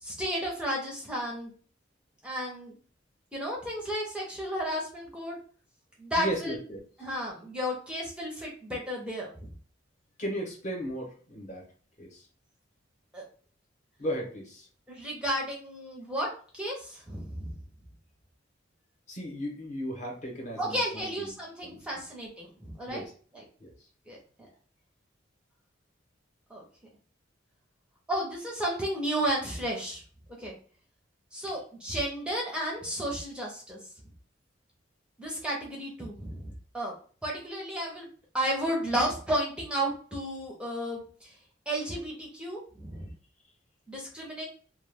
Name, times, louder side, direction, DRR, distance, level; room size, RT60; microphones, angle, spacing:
voice 1, 0.0-1.5 2.2-2.7 3.3-5.4 6.0-6.5 7.0-9.5 13.1-13.2 14.9-17.5 20.6-23.0 23.3-23.4 24.1-24.2 26.5-26.6 28.1-30.0 30.4-30.5 31.3-33.8 35.2-36.9 37.2-38.1 38.3-41.3 41.7-43.1 43.9-44.5, equal, 5° right, -2 dB, 0.5 m, -33 dB
voice 2, 6.2-6.8 10.2-11.6 12.0-12.2 14.0-14.7 19.1-21.3 21.6-22.0 22.9-23.1 23.6-23.7, equal, 40° left, 0 dB, 0.8 m, -36 dB
2.2 x 2.1 x 3.2 m, 0.42 s
head